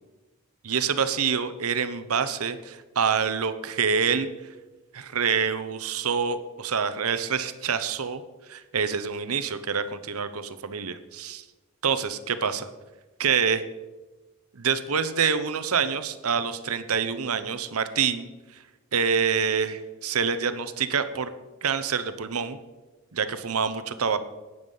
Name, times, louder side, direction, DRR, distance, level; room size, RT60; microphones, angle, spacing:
voice 1, 0.6-4.3 4.9-8.2 8.5-11.4 11.8-12.7 13.2-13.6 14.5-18.3 18.9-21.3 21.6-22.6 23.1-24.2, right 6 dB, 85° right, 11 dB, 0.9 m, -26 dB
12.0 x 9.5 x 5.5 m, 1.2 s
head